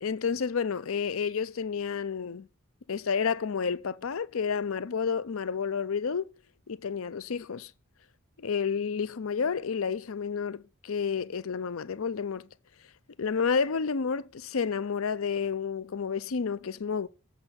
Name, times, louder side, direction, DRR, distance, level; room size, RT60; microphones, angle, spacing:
voice 1, 0.0-2.5 2.9-6.3 6.7-7.7 8.4-12.5 13.2-17.1, left 6 dB, 70° left, 0.6 m, -30 dB
8.0 x 5.5 x 5.7 m
head